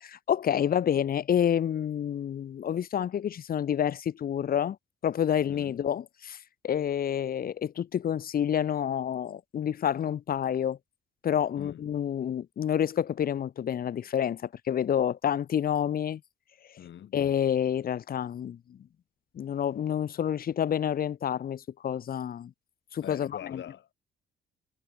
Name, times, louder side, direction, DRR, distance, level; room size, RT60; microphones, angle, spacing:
voice 1, 0.0-4.8 5.0-6.4 6.6-10.8 11.2-16.2 17.1-18.8 19.3-22.5 22.9-23.6, left 9 dB, 50° left, 0.7 m, -28 dB
voice 2, 5.5-5.8 11.6-11.9 16.8-17.1 23.0-23.9, left 10 dB, 65° left, 4.9 m, -43 dB
cardioid pair, 90°, 20 cm